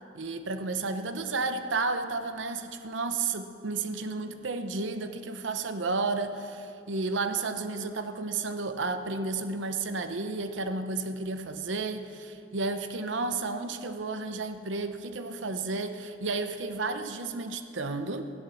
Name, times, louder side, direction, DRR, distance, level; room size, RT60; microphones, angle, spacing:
voice 1, 0.1-18.3, right 3 dB, 80° right, 8 dB, 0.8 m, -32 dB
15.5 x 11.5 x 6.2 m, 2.7 s
head